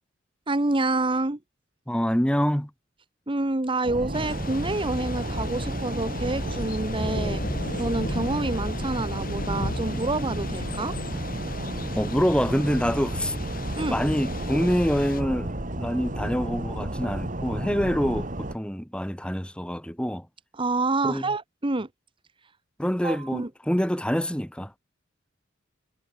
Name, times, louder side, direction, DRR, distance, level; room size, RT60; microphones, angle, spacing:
voice 1, 0.5-1.4 3.3-7.4 7.8-10.9 13.8-14.0 20.6-21.9 23.0-23.5, right 2 dB, 25° right, 1.1 m, -27 dB
voice 2, 1.9-2.7 12.0-13.3 13.8-20.3 21.0-21.3 22.8-24.7, equal, 5° left, 3.0 m, -26 dB
sound 1, 3.8-18.6, right 1 dB, 40° right, 2.8 m, -32 dB
Thunder / Rain, 4.1-15.2, left 1 dB, 45° left, 6.0 m, -35 dB
head